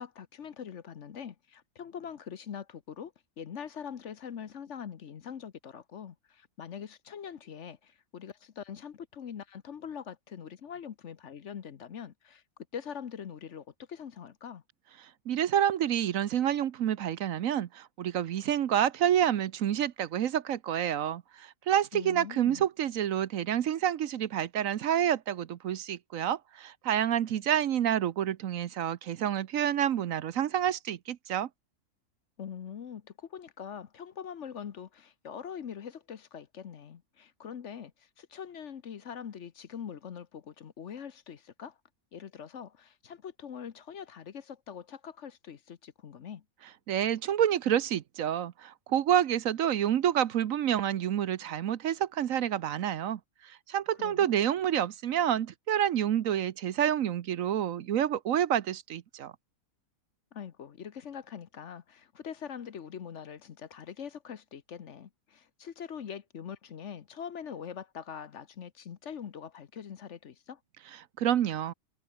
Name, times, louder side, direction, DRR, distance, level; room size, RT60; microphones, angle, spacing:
voice 1, 0.0-12.4 12.7-14.6 21.9-22.7 32.4-41.8 42.1-46.4 54.0-54.3 60.3-70.6, left 8 dB, 55° left, 1.2 m, -43 dB
voice 2, 15.3-31.5 46.9-59.3 71.2-71.7, right 10 dB, 70° right, 1.2 m, -28 dB
omnidirectional pair, 1.5 m